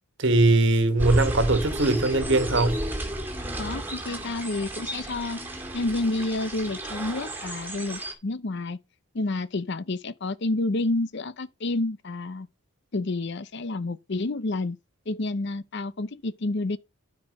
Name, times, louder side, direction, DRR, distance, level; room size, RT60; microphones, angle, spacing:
voice 1, 0.2-2.8, right 2 dB, 55° right, 1.5 m, -21 dB
sound 1, 1.0-8.1, right 1 dB, 10° right, 2.3 m, -32 dB
voice 2, 3.6-5.4 5.7-8.8 9.1-12.5 12.9-14.8 15.1-16.8, left 2 dB, 50° left, 0.6 m, -29 dB
12.5 x 4.4 x 5.3 m
head